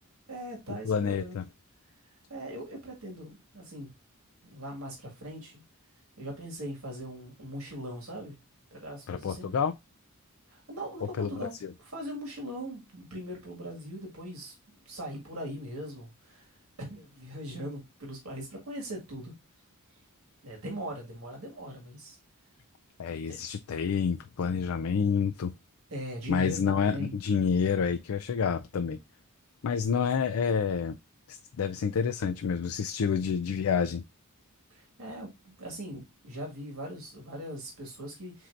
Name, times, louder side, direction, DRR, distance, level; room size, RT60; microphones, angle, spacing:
voice 1, 0.3-1.4 2.3-3.9 4.4-5.6 6.2-8.4 8.7-9.6 10.5-11.5 11.8-14.5 14.9-16.5 16.8-19.3 20.4-22.2 23.2-23.4 25.9-27.1 34.7-38.5, equal, 70° right, 1.9 m, -40 dB
voice 2, 0.8-1.4 9.1-9.8 11.0-11.3 11.6-11.7 23.0-25.5 26.3-29.0 29.6-30.9 31.3-34.0, left 6 dB, 70° left, 0.4 m, -28 dB
7.4 x 2.7 x 2.5 m
head